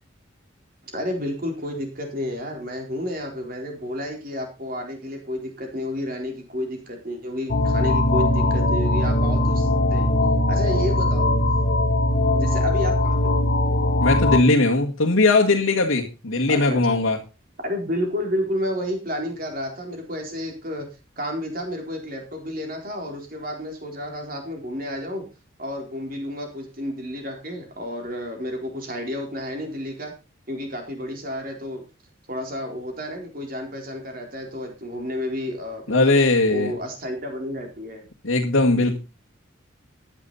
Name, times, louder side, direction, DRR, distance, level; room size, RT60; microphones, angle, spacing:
voice 1, 0.8-10.1 10.5-11.3 12.3-13.4 16.5-16.8 17.6-20.9 21.2-25.3 25.6-30.1 30.5-31.8 32.3-36.1 36.5-38.1, equal, 45° right, 3 dB, 4.1 m, -31 dB
sound 1, 7.5-14.4, left 1 dB, 45° left, 1.2 m, -20 dB
voice 2, 14.0-17.2 35.9-36.7 38.2-39.0, left 2 dB, 80° left, -3 dB, 1.8 m, -19 dB
13.5 x 10.5 x 4.1 m, 0.30 s
head